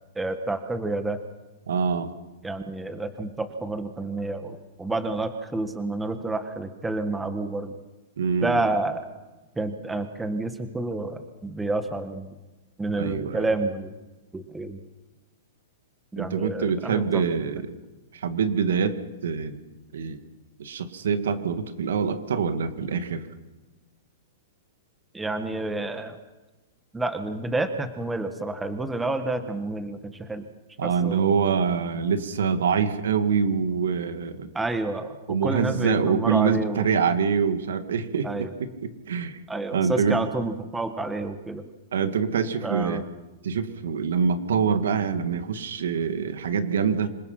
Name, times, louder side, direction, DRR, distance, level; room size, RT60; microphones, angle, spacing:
voice 1, 0.1-1.2 2.4-7.7 8.4-9.0 9.6-12.3 12.8-13.9 14.3-14.8 16.1-17.2 25.1-26.2 26.9-30.4 30.8-31.3 34.5-35.1 35.4-36.9 38.2-38.5 39.5-41.6 42.6-43.0, right 2 dB, 5° right, 8 dB, 1.5 m, -29 dB
voice 2, 1.7-2.1 8.2-8.7 13.0-13.5 16.2-17.7 18.1-19.6 19.9-20.2 20.6-23.2 30.8-34.5 35.3-39.4 39.7-40.2 41.9-43.0 43.4-47.1, right 6 dB, 85° right, 9 dB, 2.3 m, -25 dB
27.0 x 21.5 x 5.9 m, 1.1 s
hypercardioid pair, 160°, 0 cm